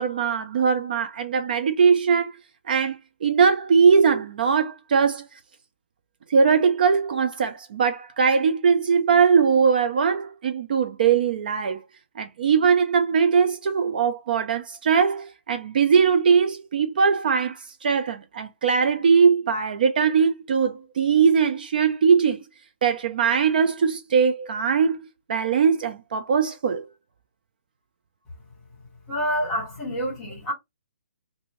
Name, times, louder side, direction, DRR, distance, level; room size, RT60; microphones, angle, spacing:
voice 1, 0.0-2.3 2.7-5.3 6.3-11.8 12.2-22.4 22.8-25.0 25.3-26.9, right 6 dB, 40° right, 0.3 m, -21 dB
voice 2, 29.1-30.5, equal, 10° left, 1.5 m, -27 dB
2.6 x 2.5 x 3.0 m
hypercardioid pair, 170°, 7 cm